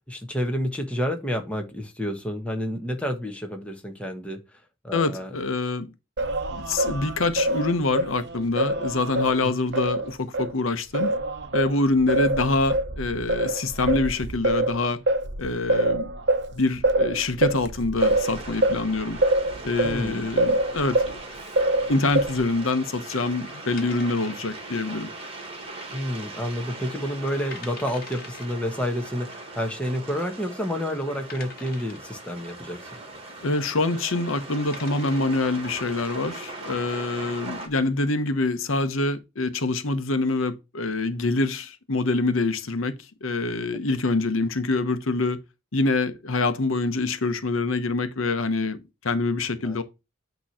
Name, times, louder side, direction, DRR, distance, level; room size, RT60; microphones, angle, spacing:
voice 1, 0.1-4.4 4.8-5.3 9.4-9.6 19.8-20.3 25.9-32.9 49.6-49.8, equal, 5° left, 1.1 m, -29 dB
voice 2, 4.9-5.9 6.5-11.1 11.5-15.0 15.4-16.1 16.5-19.2 19.6-21.2 21.9-25.1 33.4-42.9 43.2-45.4 45.7-49.8, left 3 dB, 85° left, 1.0 m, -25 dB
Singing, 6.2-10.5 10.9-21.2 21.6-22.6, right 2 dB, 55° right, 0.8 m, -25 dB
sound 1, 18.0-37.7, right 2 dB, 30° right, 1.7 m, -40 dB
sound 2, 23.8-24.7 25.0-25.1 25.7-26.1 26.5-26.6 27.1-27.2 27.5-28.5 29.6-29.7 30.3-30.4 31.3-32.1 33.9-34.1 34.5-35.4, left 6 dB, 45° left, 1.4 m, -44 dB
8.8 x 3.1 x 5.6 m
head